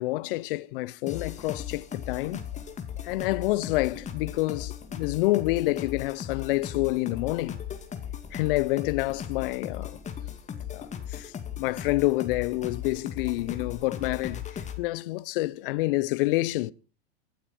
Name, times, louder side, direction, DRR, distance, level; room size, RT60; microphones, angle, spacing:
voice 1, 0.0-2.5 3.0-7.6 8.3-10.0 10.7-16.7, left 19 dB, 55° left, 0.8 m, -28 dB
sound 1, 1.1-14.8, left 8 dB, 20° left, 2.3 m, -37 dB
24.0 x 9.1 x 4.4 m
hypercardioid pair, 105°, 32 cm